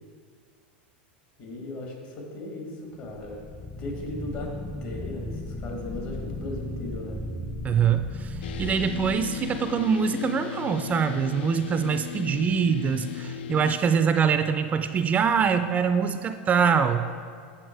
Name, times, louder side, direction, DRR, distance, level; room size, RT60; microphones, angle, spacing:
voice 1, 1.4-3.5 3.8-4.6 4.8-7.2, left 1 dB, 55° left, 0 dB, 2.2 m, -37 dB
sound 1, 3.1-10.1, left 1 dB, 20° left, 0.8 m, -36 dB
voice 2, 7.6-17.1, right 6 dB, 25° right, 10 dB, 0.3 m, -24 dB
Dist Chr E rock up, 8.4-13.8, left 10 dB, 75° left, 0.4 m, -36 dB
8.1 x 5.8 x 4.6 m, 2.2 s
hypercardioid pair, 105°, 6 cm